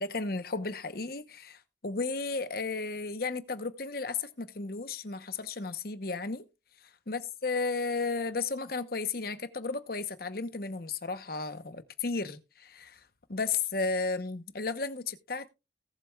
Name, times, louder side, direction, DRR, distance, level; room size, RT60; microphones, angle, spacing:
voice 1, 0.0-6.4 7.1-13.0 13.3-15.5, left 4 dB, 55° left, 1.0 m, -34 dB
18.0 x 7.5 x 2.4 m
head